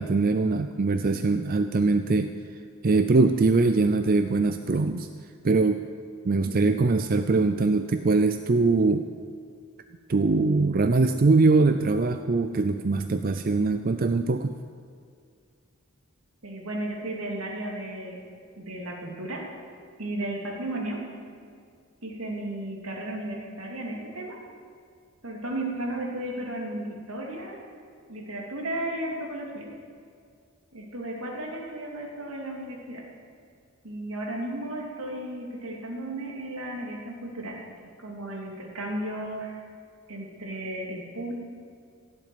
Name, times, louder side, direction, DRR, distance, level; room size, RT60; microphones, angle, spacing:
voice 1, 0.0-5.1 5.4-5.8 6.2-9.1 10.1-14.5, right 3 dB, 40° right, 9 dB, 0.5 m, -22 dB
voice 2, 6.5-6.8 16.4-18.2 18.6-19.4 20.0-21.0 22.0-24.4 25.2-27.6 28.1-29.7 30.7-33.0 33.8-37.6 38.0-39.5 40.1-41.3, right 1 dB, 75° right, -1 dB, 2.9 m, -34 dB
16.5 x 7.8 x 9.3 m, 2.2 s
head